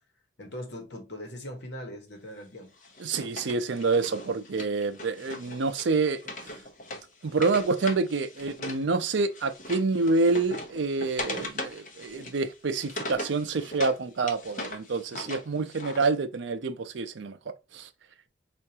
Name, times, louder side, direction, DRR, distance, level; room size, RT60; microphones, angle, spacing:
voice 1, 0.4-2.7, equal, 65° left, 1.2 m, -40 dB
Wood, 2.8-8.8 9.1-14.0 14.3-16.0, left 1 dB, 40° left, 0.9 m, -39 dB
voice 2, 3.0-6.5 7.2-17.4 17.7-17.9, right 3 dB, 75° right, 0.5 m, -27 dB
4.5 x 2.5 x 2.7 m
head